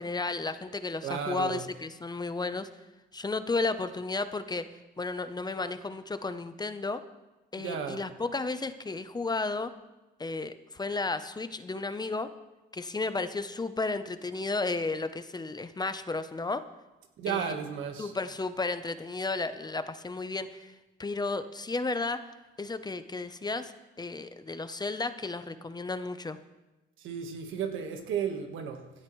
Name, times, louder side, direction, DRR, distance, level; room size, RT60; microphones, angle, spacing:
voice 1, 0.0-2.7 3.1-4.7 5.0-7.0 7.5-9.7 10.2-12.3 12.7-16.6 17.3-17.6 18.0-20.7 21.0-22.2 22.6-23.7 24.0-26.4, left 3 dB, 20° left, 11 dB, 0.7 m, -33 dB
voice 2, 1.0-1.7 7.6-8.0 17.2-18.1 27.0-28.9, right 7 dB, 85° right, 5 dB, 1.5 m, -34 dB
17.0 x 12.0 x 3.2 m, 1.1 s
cardioid pair, 90°, 20 cm